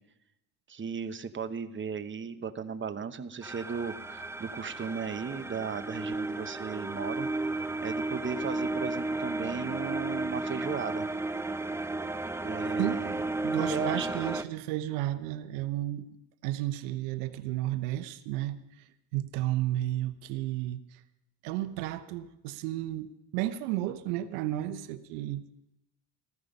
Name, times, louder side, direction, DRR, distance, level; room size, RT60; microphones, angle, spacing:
voice 1, 0.7-7.3 7.8-11.1 12.4-13.2 13.6-14.2, right 6 dB, 25° right, 10 dB, 1.0 m, -36 dB
sound 1, 3.4-14.4, right 2 dB, 5° right, 0.7 m, -33 dB
voice 2, 13.4-16.1 16.4-21.0 21.4-23.1 23.3-25.4, right 14 dB, 85° right, 12 dB, 0.9 m, -33 dB
15.0 x 14.5 x 5.3 m, 0.85 s
supercardioid pair, 80°, 47 cm